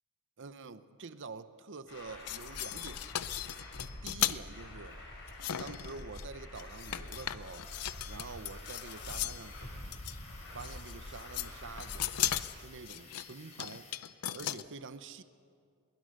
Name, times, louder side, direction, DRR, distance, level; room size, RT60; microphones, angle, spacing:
voice 1, 0.4-3.0 4.0-5.0 5.6-7.7 8.1-9.8 10.5-12.0 12.5-13.9 14.3-15.2, right 4 dB, 55° right, 12 dB, 0.9 m, -47 dB
Truck, 1.9-12.4, left 1 dB, 55° left, 6.7 m, -47 dB
sound 1, 2.1-4.4 5.3-6.3 6.6-9.5 9.9-10.2 10.6-11.5 11.8-14.6, left 12 dB, 85° left, 0.6 m, -37 dB
sound 2, 7.6-14.0, left 3 dB, 30° left, 3.7 m, -56 dB
22.0 x 20.5 x 6.7 m, 2.3 s
head